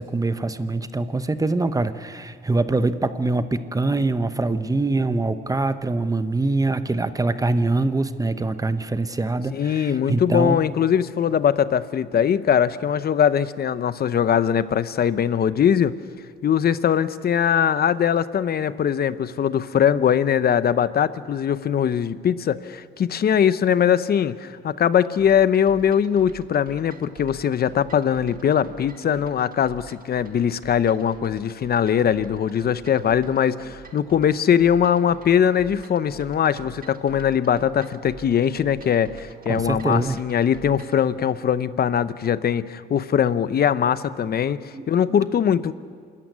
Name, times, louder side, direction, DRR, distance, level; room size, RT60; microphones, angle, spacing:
voice 1, 0.0-10.6 39.5-40.2 44.7-44.9, right 2 dB, 15° right, 11 dB, 1.0 m, -24 dB
voice 2, 9.5-15.9 16.4-45.7, left 8 dB, 50° left, 15 dB, 0.8 m, -21 dB
sound 1, 25.2-41.0, right 6 dB, 45° right, 1.7 m, -46 dB
26.5 x 13.5 x 9.5 m, 2.1 s
cardioid pair, 90°, 20 cm